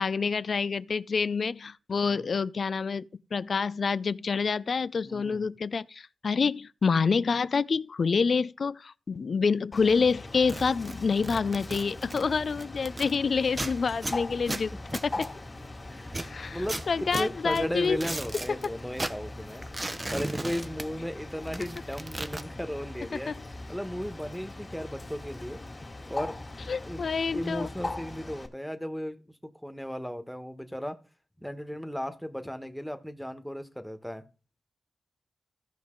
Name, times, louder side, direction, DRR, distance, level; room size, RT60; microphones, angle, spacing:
voice 1, 0.0-3.1 3.3-14.7 15.0-15.3 16.2-18.0 18.5-18.6 23.3-23.4 26.7-27.7, left 5 dB, 70° left, 0.4 m, -27 dB
voice 2, 5.0-5.5 14.0-14.4 14.7-15.0 15.9-16.2 16.5-19.7 20.1-23.3 23.7-25.6 26.1-26.4 26.8-27.0 27.3-31.0 31.4-34.2, equal, 5° left, 1.4 m, -36 dB
Bird, 9.7-28.5, left 2 dB, 40° left, 2.2 m, -41 dB
sound 1, 10.4-13.2 13.5-15.7 16.1-18.7 18.9-21.2 21.4-22.4, right 2 dB, 30° right, 0.7 m, -37 dB
14.5 x 5.2 x 3.8 m
cardioid pair, 40°, 0 cm